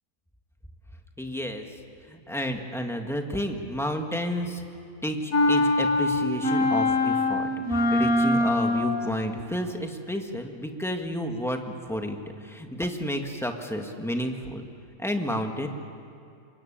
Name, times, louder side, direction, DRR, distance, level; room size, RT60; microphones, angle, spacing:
voice 1, 1.2-1.6 2.1-4.6 5.0-14.6 15.0-15.7, equal, ahead, 3 dB, 1.6 m, -31 dB
sound 1, 5.3-9.2, left 2 dB, 65° left, 2.2 m, -23 dB
25.0 x 21.5 x 8.8 m, 2.5 s
omnidirectional pair, 1.5 m